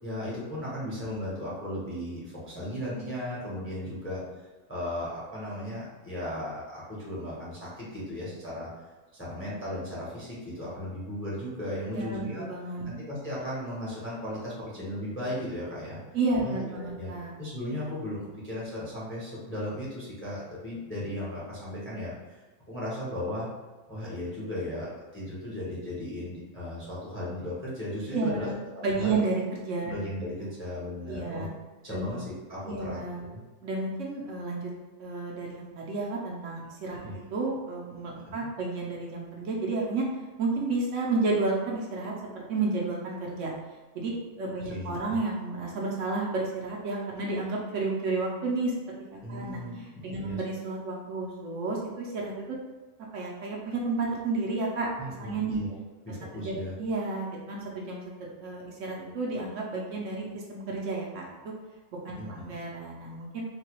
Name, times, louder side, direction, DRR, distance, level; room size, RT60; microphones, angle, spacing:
voice 1, 0.0-4.4 4.7-8.7 9.1-12.5 12.8-16.1 16.4-17.1 17.4-22.4 22.7-23.5 23.9-28.5 29.0-29.2 29.9-31.5 31.8-33.0 33.3-33.4 37.0-37.1 38.3-38.5 44.7-45.2 49.2-50.4 55.0-55.7 56.1-56.7 62.2-62.4, left 1 dB, 10° left, -7 dB, 0.6 m, -36 dB
voice 2, 11.9-12.9 16.1-17.3 28.1-30.0 31.1-31.5 31.9-32.2 32.7-33.3 33.6-34.7 35.0-37.0 37.3-40.0 40.4-43.5 43.9-48.7 49.1-52.6 53.1-54.9 55.2-55.6 56.3-61.5 61.9-63.4, right 3 dB, 65° right, -2 dB, 0.9 m, -31 dB
3.9 x 2.2 x 2.9 m, 1.2 s
omnidirectional pair, 1.4 m